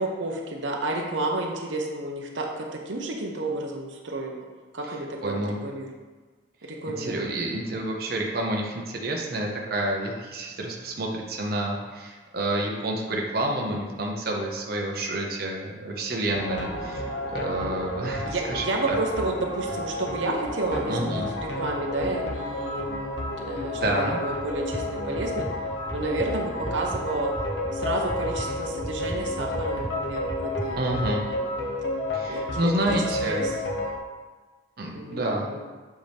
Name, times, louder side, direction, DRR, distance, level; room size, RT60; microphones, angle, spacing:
voice 1, 0.0-4.5 4.7-5.9 6.7-7.3 18.2-21.2 21.5-25.5 25.9-27.3 27.7-31.2 32.3-33.6 34.9-35.6, right 2 dB, 90° right, 1 dB, 0.9 m, -31 dB
voice 2, 5.2-5.6 6.8-17.0 17.3-18.9 20.9-21.3 23.7-24.2 30.8-31.2 32.1-33.5 34.8-35.5, right 1 dB, 55° right, -1 dB, 0.9 m, -29 dB
sound 1, 16.3-34.0, left 1 dB, 80° left, 1.0 m, -31 dB
sound 2, 24.6-31.1, right 1 dB, 10° right, 0.4 m, -38 dB
7.8 x 4.7 x 3.5 m, 1.4 s
head